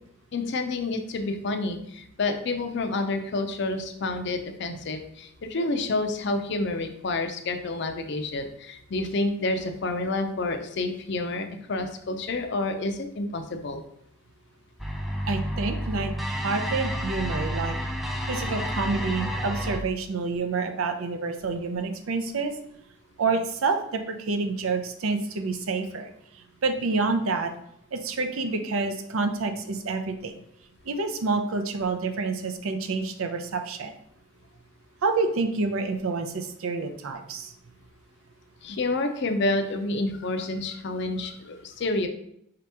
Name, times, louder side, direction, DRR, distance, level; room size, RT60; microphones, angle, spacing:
voice 1, 0.3-13.8 38.6-42.1, left 2 dB, 55° left, 7 dB, 0.5 m, -29 dB
sound 1, 14.8-19.8, equal, ahead, 0.3 m, -30 dB
voice 2, 15.3-17.8 18.3-22.5 23.2-26.1 26.6-27.5 27.9-30.3 30.9-33.9 35.0-37.5, right 4 dB, 85° right, 6 dB, 0.5 m, -28 dB
5.0 x 2.9 x 3.4 m, 0.72 s
head